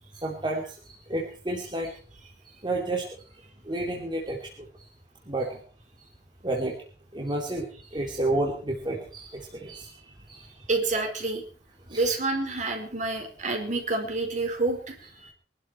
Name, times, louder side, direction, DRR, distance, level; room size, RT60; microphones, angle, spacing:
voice 1, 0.1-1.9 2.6-3.1 3.6-4.5 5.3-5.6 6.4-6.8 7.1-10.0 10.3-10.5 11.9-12.0, right 2 dB, 25° right, 0 dB, 2.8 m, -30 dB
voice 2, 10.7-11.4 11.9-15.3, right 2 dB, 45° right, 4 dB, 4.7 m, -28 dB
23.5 x 12.5 x 4.4 m, 0.38 s
head